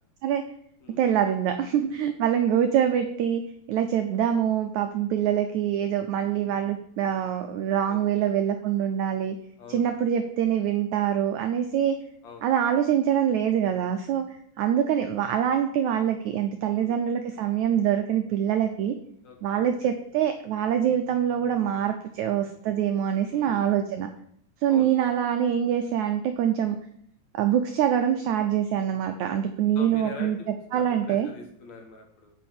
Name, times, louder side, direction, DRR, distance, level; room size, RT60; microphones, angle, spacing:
voice 1, 1.0-3.4 3.7-9.4 9.7-11.9 12.4-14.2 14.6-18.9 19.4-24.1 24.6-26.8 27.3-30.4 30.7-31.3, right 9 dB, 85° right, 6 dB, 1.6 m, -24 dB
voice 2, 7.9-8.3 9.6-9.9 12.2-12.5 16.6-17.0 19.2-19.4 23.3-23.8 24.7-25.0 29.8-32.3, left 4 dB, 60° left, 2 dB, 2.0 m, -43 dB
8.5 x 5.5 x 7.2 m, 0.67 s
omnidirectional pair, 4.2 m